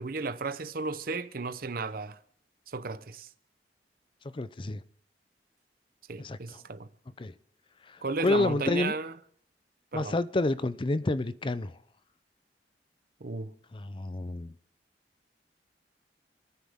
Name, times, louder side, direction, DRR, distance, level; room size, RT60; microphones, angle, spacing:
voice 1, 0.0-2.2 2.7-3.3 6.1-6.9 8.0-9.1 9.9-10.2 13.2-13.5, right 3 dB, 55° right, 0.8 m, -34 dB
voice 2, 4.3-4.8 6.2-6.6 7.2-7.3 7.9-9.0 9.9-11.7 13.7-14.5, left 2 dB, 30° left, 0.5 m, -29 dB
28.5 x 9.7 x 3.6 m
head